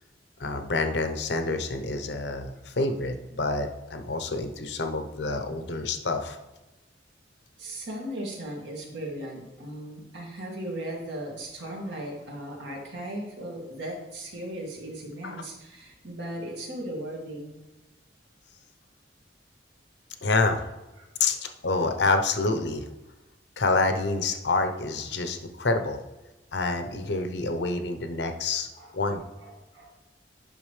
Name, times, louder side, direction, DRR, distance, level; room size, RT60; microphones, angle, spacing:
voice 1, 0.4-6.4 15.2-15.4 20.2-20.6 21.2-22.9 23.6-26.0 26.5-28.7 28.9-29.2, left 3 dB, 70° left, 7 dB, 0.8 m, -27 dB
voice 2, 7.6-17.6 21.0-21.3 28.8-29.9, right 1 dB, 75° right, -1 dB, 2.1 m, -37 dB
8.8 x 5.9 x 3.2 m, 1.1 s
head